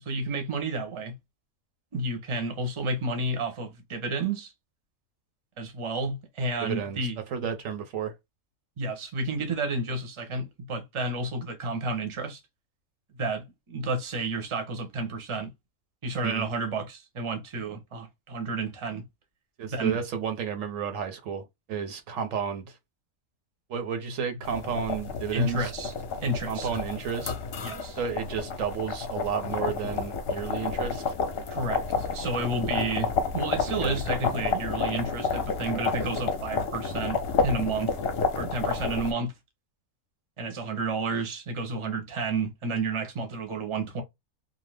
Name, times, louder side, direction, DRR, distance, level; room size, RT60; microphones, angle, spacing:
voice 1, 0.1-1.1 1.9-4.5 5.6-7.2 8.8-12.4 13.2-15.5 16.0-19.0 19.7-19.9 25.3-25.9 26.2-26.7 27.6-28.0 31.5-37.9 38.4-39.3 40.4-44.0, right 2 dB, 30° right, 0.7 m, -31 dB
voice 2, 6.6-7.0 7.3-8.1 16.2-16.5 19.6-21.4 21.7-22.7 23.7-25.7 26.5-27.3 28.0-31.0 33.8-34.0, right 7 dB, 70° right, 1.0 m, -32 dB
sound 1, 24.4-39.1, left 5 dB, 55° left, 0.8 m, -30 dB
2.7 x 2.1 x 3.3 m
omnidirectional pair, 1.5 m